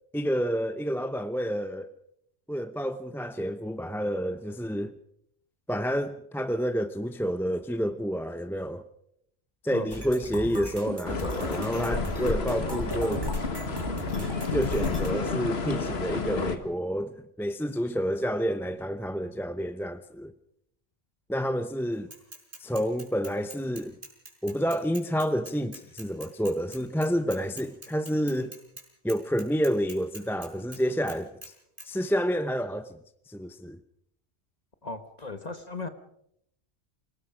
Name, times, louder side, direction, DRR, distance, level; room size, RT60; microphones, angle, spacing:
voice 1, 0.1-1.9 2.5-4.9 5.7-8.8 9.6-13.3 14.5-20.3 21.3-22.1 22.6-23.9 24.4-28.5 29.0-31.3 31.8-33.0 33.3-33.8, equal, 5° left, 0.6 m, -29 dB
sound 1, 9.9-15.1, right 1 dB, 20° right, 3.1 m, -37 dB
sound 2, 11.1-16.6, left 4 dB, 75° left, 1.9 m, -30 dB
Bicycle / Mechanisms, 22.1-28.8 29.1-30.8 31.1-31.5 31.8-31.9, right 1 dB, 55° right, 4.7 m, -44 dB
voice 2, 34.8-35.9, left 3 dB, 40° left, 1.3 m, -37 dB
28.5 x 19.0 x 5.0 m
omnidirectional pair, 1.1 m